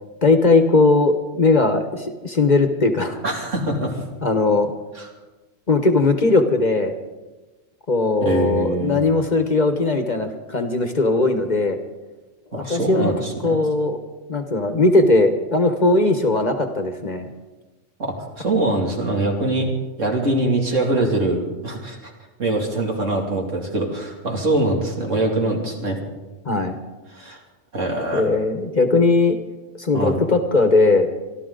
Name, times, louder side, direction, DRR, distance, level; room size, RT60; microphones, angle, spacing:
voice 1, 0.2-3.2 4.2-4.7 5.7-6.9 7.9-11.8 12.5-13.1 13.4-14.0 14.3-17.3 26.4-26.8 28.1-29.4 29.7-31.1, left 3 dB, 35° left, 7 dB, 1.2 m, -18 dB
voice 2, 3.2-4.0 5.0-5.1 8.2-9.0 12.5-13.6 18.0-19.7 20.0-22.1 22.4-26.0 27.1-27.4 27.7-28.3 29.9-30.2, right 2 dB, 75° right, 0 dB, 2.9 m, -23 dB
26.0 x 12.0 x 3.9 m, 1.2 s
omnidirectional pair, 1.3 m